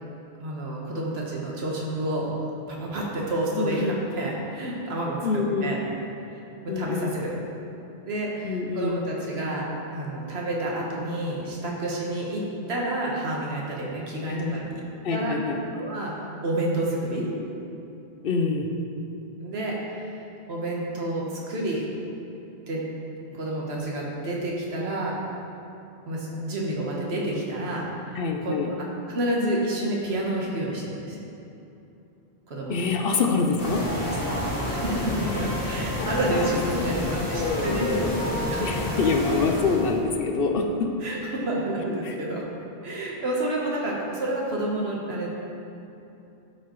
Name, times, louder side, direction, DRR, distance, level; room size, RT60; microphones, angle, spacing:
voice 1, 0.4-2.3 2.7-5.8 6.3-7.3 8.1-12.4 12.7-14.7 15.1-15.4 15.7-17.3 19.4-20.2 20.5-21.8 22.7-22.9 23.3-25.1 26.1-28.7 29.1-31.2 32.5-32.9 34.7-36.9 37.3-38.7 41.0-42.4 42.8-45.3, right 1 dB, 70° right, -3 dB, 1.4 m, -29 dB
voice 2, 3.6-4.0 5.2-5.8 6.7-7.2 8.4-9.0 14.3-14.6 15.0-15.6 18.2-18.7 28.1-28.7 32.7-33.8 36.0-37.0 37.3-38.2 38.6-41.0 42.0-42.1, left 4 dB, 65° left, 3 dB, 0.7 m, -26 dB
sound 1, 33.6-40.0, left 1 dB, 90° left, 2.1 m, -29 dB
12.0 x 4.7 x 3.1 m, 2.9 s
omnidirectional pair, 1.1 m